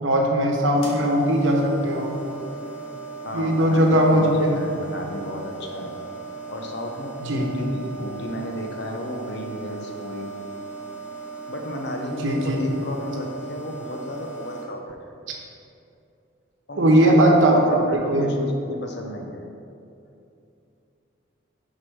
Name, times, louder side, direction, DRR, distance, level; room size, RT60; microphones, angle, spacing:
voice 1, 0.0-2.2 3.3-4.5 7.2-7.7 12.2-12.6 16.8-17.5 18.1-18.3, right 1 dB, 80° right, 0 dB, 1.0 m, -19 dB
sound 1, 0.7-14.6, right 4 dB, 85° left, 1.4 m, -37 dB
voice 2, 3.2-5.9 6.5-10.3 11.5-15.0 16.7-17.1 17.5-19.4, left 1 dB, 60° left, 2 dB, 0.7 m, -33 dB
6.2 x 4.6 x 4.6 m, 2.6 s
head